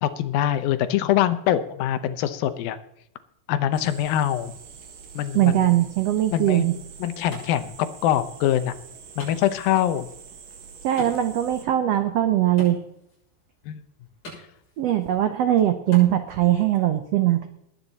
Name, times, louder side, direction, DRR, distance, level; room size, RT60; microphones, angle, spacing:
voice 1, 0.0-2.8 3.5-4.5 5.2-5.7 6.3-6.7 7.0-8.7 9.2-10.1 13.7-13.8, left 11 dB, 85° left, 12 dB, 2.6 m, -24 dB
sound 1, 3.7-11.6, right 6 dB, 70° right, 3.4 m, -45 dB
voice 2, 5.3-6.7 10.8-12.8 14.8-17.5, right 13 dB, 85° right, 8 dB, 1.4 m, -21 dB
Wood, 6.5-16.5, equal, 55° left, 8.3 m, -47 dB
20.0 x 9.0 x 4.1 m, 0.78 s
omnidirectional pair, 4.1 m